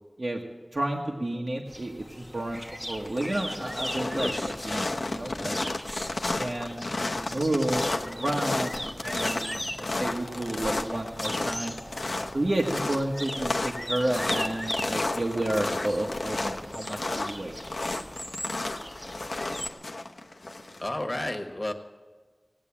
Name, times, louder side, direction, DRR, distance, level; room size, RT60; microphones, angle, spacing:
voice 1, 0.7-5.6 6.4-11.8 12.3-17.5, right 1 dB, 60° right, 0 dB, 1.3 m, -31 dB
sound 1, 1.7-19.7, equal, 5° right, 1.1 m, -39 dB
sound 2, 2.3-2.7 3.0-20.9, left 2 dB, 85° left, 0.8 m, -32 dB
voice 2, 20.8-21.7, left 1 dB, 35° left, 6 dB, 1.4 m, -31 dB
18.0 x 8.2 x 8.6 m, 1.4 s
wide cardioid pair, 55°, 0 cm